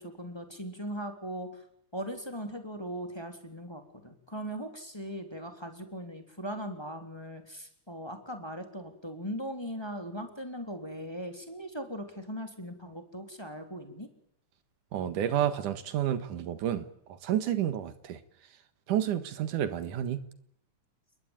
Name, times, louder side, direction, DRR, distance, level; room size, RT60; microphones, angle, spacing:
voice 1, 0.0-1.6 1.9-14.1, equal, 10° left, 6 dB, 3.2 m, -39 dB
voice 2, 14.9-18.2 18.9-20.2, right 10 dB, 90° right, 11 dB, 3.1 m, -30 dB
28.5 x 22.0 x 9.1 m, 0.70 s
omnidirectional pair, 3.5 m